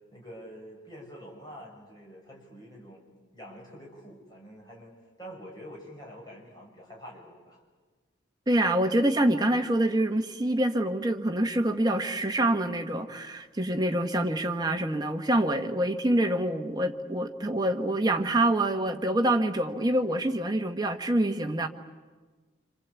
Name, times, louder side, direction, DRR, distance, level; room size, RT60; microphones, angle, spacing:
voice 1, 0.1-3.1 3.3-4.9 5.2-7.6, equal, 20° left, -2 dB, 6.6 m, -46 dB
voice 2, 8.5-21.7, right 1 dB, 20° right, 5 dB, 1.3 m, -26 dB
27.0 x 26.0 x 8.3 m, 1.3 s
head